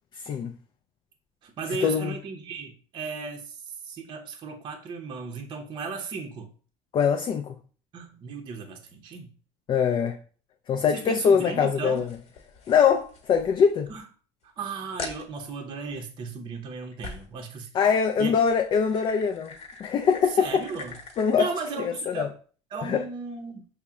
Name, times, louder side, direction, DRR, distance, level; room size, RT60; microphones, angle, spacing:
voice 1, 0.2-0.5 1.8-2.1 6.9-7.5 9.7-10.2 10.7-12.0 12.7-13.9 17.7-19.5 19.8-20.6 21.2-21.5 21.8-22.3 22.9-23.0, left 6 dB, 35° left, 0.4 m, -23 dB
voice 2, 1.4-6.5 7.9-9.3 10.9-12.1 13.9-14.1 14.4-17.7 18.2-18.3 20.3-21.0 21.4-22.3 22.7-23.6, right 4 dB, 35° right, 0.7 m, -36 dB
sound 1, 11.9-14.0 14.4-14.5 15.0-15.3 17.0-17.4 18.1-21.4, left 4 dB, 55° left, 1.1 m, -43 dB
5.5 x 2.1 x 3.6 m
cardioid pair, 130°, 14 cm